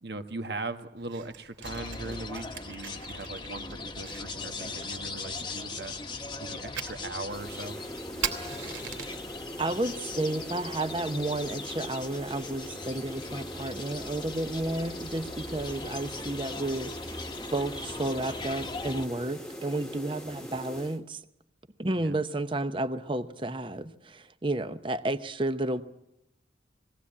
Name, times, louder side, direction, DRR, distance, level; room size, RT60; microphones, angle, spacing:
voice 1, 0.0-5.9 6.4-7.8 22.0-22.2, right 2 dB, 60° right, 7 dB, 1.3 m, -39 dB
Fire, 1.0-9.3, right 7 dB, 85° right, 2.8 m, -42 dB
sound 1, 1.6-19.1, left 3 dB, 25° left, 1.1 m, -40 dB
sound 2, 7.3-21.0, equal, 5° left, 1.3 m, -42 dB
voice 2, 9.6-17.2 17.5-21.2 21.8-25.8, right 2 dB, 25° right, 10 dB, 0.8 m, -32 dB
21.0 x 17.0 x 8.6 m, 0.86 s
head